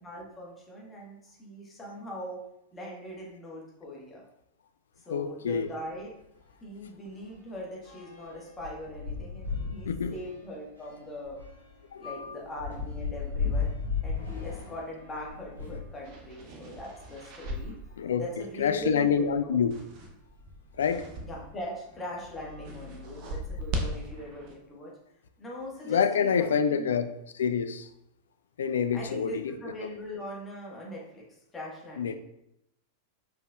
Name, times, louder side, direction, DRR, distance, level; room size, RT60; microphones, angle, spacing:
voice 1, 0.0-2.4 2.7-4.2 5.0-6.2 6.6-11.4 12.0-13.7 14.0-17.7 18.0-19.6 21.0-24.9 25.4-26.9 28.9-31.2 31.5-32.2, left 1 dB, 15° left, -4 dB, 1.4 m, -41 dB
voice 2, 5.1-5.7 9.9-10.2 11.9-12.4 18.0-19.8 20.8-21.1 25.9-27.9 28.6-29.9 32.0-32.1, left 7 dB, 65° left, 10 dB, 0.3 m, -27 dB
sound 1, 5.6-5.7 6.0-6.1 6.4-15.9 16.6-18.0 18.7-18.8 19.0-19.1 20.8-21.0 21.6-21.8 22.2-23.5, left 5 dB, 90° right, 1.6 m, -37 dB
sound 2, 15.2-21.6 21.9-24.5, equal, 45° right, 0.8 m, -40 dB
4.8 x 4.5 x 2.4 m, 0.78 s
figure-of-eight pair, 90°, 0 cm